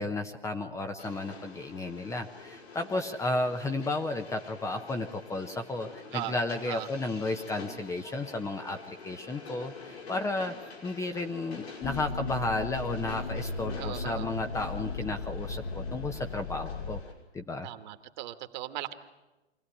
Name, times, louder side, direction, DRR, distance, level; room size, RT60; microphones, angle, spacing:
voice 1, 0.0-10.5 10.8-17.0 17.3-17.7, left 2 dB, 10° left, 6 dB, 0.8 m, -33 dB
Train, 1.0-17.1, left 4 dB, 75° left, 6.1 m, -47 dB
sound 1, 11.8-17.0, left 4 dB, 50° left, 1.4 m, -36 dB
voice 2, 13.8-14.3 17.6-18.9, right 15 dB, 45° right, 9 dB, 1.7 m, -38 dB
24.5 x 16.5 x 10.0 m, 1.1 s
hypercardioid pair, 125°, 32 cm